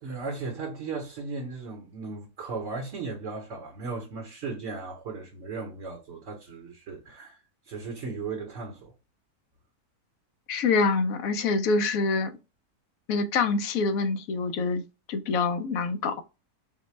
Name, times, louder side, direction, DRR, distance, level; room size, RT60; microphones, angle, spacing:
voice 1, 0.0-7.4 7.7-8.9, right 4 dB, 60° right, 1.0 m, -36 dB
voice 2, 10.5-12.3 13.1-14.8 15.1-16.2, left 4 dB, 70° left, 0.9 m, -25 dB
4.1 x 2.1 x 3.1 m
omnidirectional pair, 1.6 m